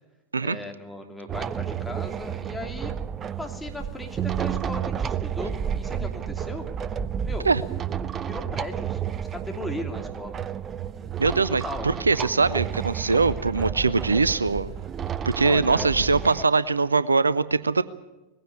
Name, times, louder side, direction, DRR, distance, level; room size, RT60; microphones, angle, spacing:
voice 1, 0.4-2.9 3.4-6.6 7.2-7.5 8.2-10.4 11.6-12.1 15.4-15.9, left 2 dB, 5° left, 2 dB, 2.8 m, -37 dB
sound 1, 1.3-16.4, right 8 dB, 25° right, 0.6 m, -31 dB
voice 2, 11.2-14.7 15.3-17.8, right 4 dB, 75° right, 18 dB, 0.6 m, -22 dB
20.0 x 16.0 x 8.8 m, 1.0 s
figure-of-eight pair, 90°, 0 cm